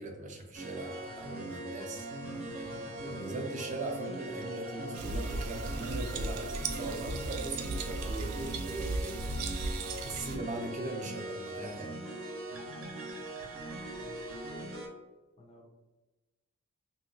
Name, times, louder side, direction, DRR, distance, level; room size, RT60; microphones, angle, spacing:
voice 1, 0.0-9.2 10.0-11.9, right 2 dB, 35° right, 1 dB, 0.5 m, -40 dB
sound 1, 0.5-14.9, right 1 dB, 65° right, 0.8 m, -41 dB
sound 2, 4.9-10.4, right 3 dB, 85° right, 0.4 m, -36 dB
voice 2, 14.0-14.2 15.4-15.7, equal, 30° left, 1 dB, 0.4 m, -55 dB
3.0 x 2.7 x 2.7 m, 1.1 s
head